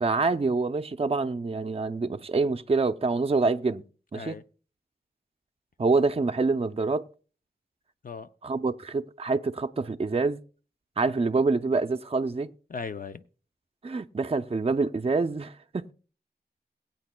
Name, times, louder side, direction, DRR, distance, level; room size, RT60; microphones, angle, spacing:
voice 1, 0.0-3.8 4.1-4.4 5.8-7.0 8.4-10.4 11.0-12.5 13.8-15.9, right 3 dB, 35° right, 0.5 m, -26 dB
voice 2, 12.7-13.2, left 5 dB, 55° left, 0.5 m, -37 dB
22.5 x 8.6 x 2.2 m
wide cardioid pair, 55°, 18 cm